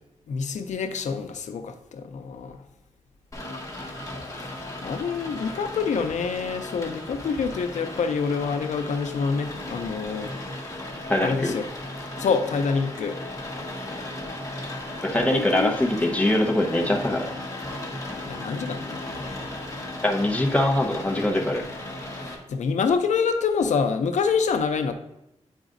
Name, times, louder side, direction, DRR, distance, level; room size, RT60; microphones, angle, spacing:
voice 1, 0.3-2.6 4.4-10.8 11.2-11.7 12.2-13.2 15.3-15.7 16.2-16.4 18.2-19.3 22.1-24.9, left 5 dB, 85° left, 8 dB, 0.5 m, -27 dB
Rain, 3.3-22.3, left 1 dB, 30° left, 1.5 m, -36 dB
voice 2, 11.1-11.6 15.0-17.3 20.0-21.7, left 1 dB, 10° left, 0 dB, 0.9 m, -23 dB
8.9 x 4.9 x 2.5 m, 0.86 s
wide cardioid pair, 90°, 12 cm